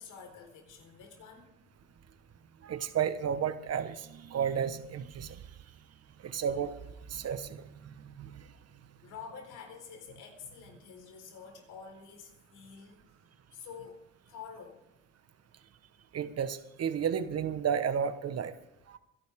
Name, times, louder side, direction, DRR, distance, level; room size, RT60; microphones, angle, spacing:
voice 1, 0.0-1.5 9.0-13.0 13.5-14.0 14.3-14.8, left 6 dB, 85° left, 3 dB, 4.3 m, -48 dB
voice 2, 2.6-5.4 6.2-6.7 7.1-8.5 16.1-18.5 18.9-19.0, right 8 dB, 55° right, 11 dB, 1.3 m, -33 dB
24.0 x 11.5 x 3.7 m, 0.88 s
cardioid pair, 90°, 30 cm